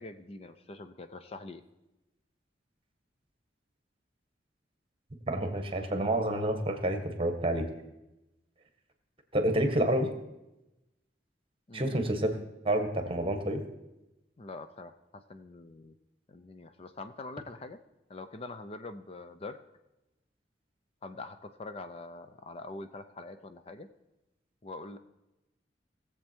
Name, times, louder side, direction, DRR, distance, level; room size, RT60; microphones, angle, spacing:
voice 1, 0.0-1.6 11.7-12.4 14.4-16.0 16.3-17.8 18.1-19.6 21.0-23.9 24.6-25.0, left 2 dB, 35° left, 9 dB, 0.6 m, -44 dB
voice 2, 5.3-7.7 9.3-10.1 11.7-12.4 12.6-13.6, right 1 dB, 30° right, 7 dB, 1.3 m, -28 dB
19.0 x 7.5 x 4.5 m, 0.95 s
head